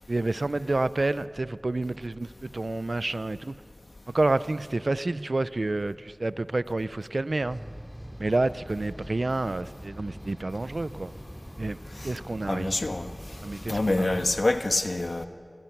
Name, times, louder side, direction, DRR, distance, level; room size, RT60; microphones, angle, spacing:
voice 1, 0.1-3.6 4.1-7.6 8.2-11.1 11.6-11.8 12.0-12.7 13.4-14.2, right 2 dB, 70° right, 15 dB, 0.5 m, -29 dB
sound 1, 7.4-14.4, equal, 10° right, 2.8 m, -43 dB
voice 2, 12.5-13.1 13.7-15.3, left 2 dB, 75° left, 7 dB, 1.2 m, -26 dB
28.0 x 19.5 x 6.0 m, 2.2 s
wide cardioid pair, 45°, 0 cm